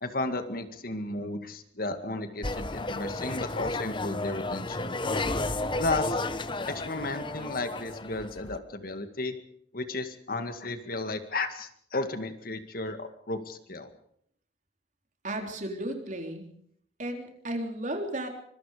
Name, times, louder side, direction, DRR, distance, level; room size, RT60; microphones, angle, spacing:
voice 1, 0.0-5.0 5.8-6.2 6.7-9.4 9.7-13.9, left 2 dB, 50° left, 8 dB, 2.1 m, -33 dB
sound 1, 2.4-8.6, left 2 dB, 25° left, 1.1 m, -32 dB
voice 2, 15.2-16.5 17.0-18.3, right 1 dB, 45° right, 3 dB, 3.8 m, -34 dB
25.0 x 23.5 x 5.1 m, 0.65 s
head